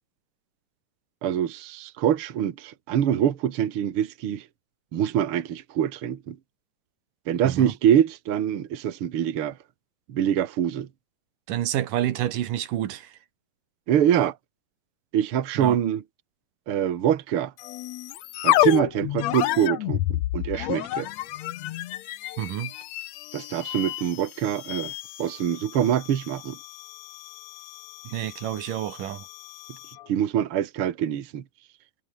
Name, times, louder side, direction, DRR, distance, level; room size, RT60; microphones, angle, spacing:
voice 1, 1.2-4.5 4.9-6.4 7.3-9.6 10.1-10.9 13.9-14.3 15.1-16.0 16.7-17.5 18.4-21.1 23.3-24.9 25.2-26.6 30.1-31.4, right 10 dB, 50° right, 2.1 m, -24 dB
voice 2, 11.5-13.1 15.6-15.8 22.4-22.7 28.0-29.2, right 12 dB, 85° right, 3.1 m, -29 dB
sound 1, 17.6-30.1, left 15 dB, 70° left, 1.9 m, -30 dB
omnidirectional pair, 3.7 m